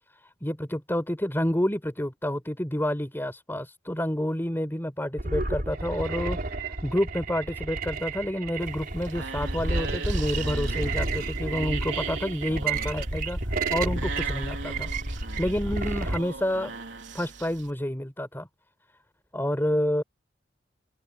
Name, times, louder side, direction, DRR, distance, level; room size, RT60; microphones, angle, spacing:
voice 1, 0.1-6.5 6.8-14.9 15.4-16.7 17.1-18.5 19.3-20.0, equal, 10° left, 4.4 m, -29 dB
sound 1, 5.2-16.2, right 2 dB, 50° right, 3.7 m, -31 dB
sound 2, 8.6-17.7, right 4 dB, 70° right, 3.7 m, -39 dB
open air
head